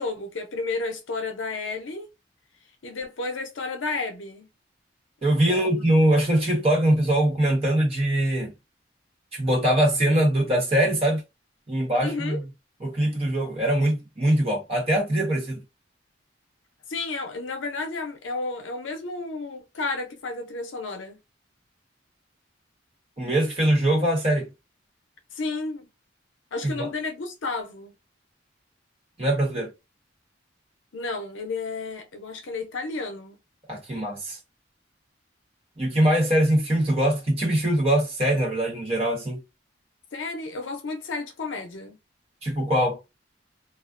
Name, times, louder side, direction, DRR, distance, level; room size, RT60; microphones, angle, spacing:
voice 1, 0.0-2.1 2.8-4.5 5.3-5.9 11.9-12.4 16.9-21.2 25.3-25.9 26.5-27.9 30.9-33.4 40.1-42.0, left 3 dB, 80° left, 0.6 m, -32 dB
voice 2, 5.2-8.5 9.3-11.2 11.7-12.4 12.8-15.6 23.2-24.5 26.8-26.9 29.2-29.7 33.7-34.4 35.8-39.4 42.4-43.0, right 1 dB, 30° right, 1.0 m, -22 dB
2.4 x 2.1 x 2.4 m
head